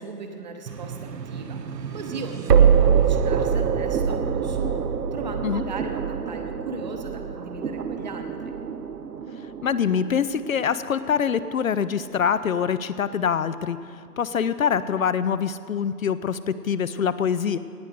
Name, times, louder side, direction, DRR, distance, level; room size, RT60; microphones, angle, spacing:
voice 1, 0.0-1.6 1.9-8.5, right 3 dB, 30° right, 5 dB, 0.8 m, -37 dB
sound 1, 0.7-11.7, right 7 dB, 90° right, 0.9 m, -25 dB
voice 2, 9.6-13.8 14.2-17.6, left 7 dB, 60° left, 14 dB, 0.5 m, -24 dB
18.0 x 7.7 x 5.0 m, 2.2 s
hypercardioid pair, 150°, 47 cm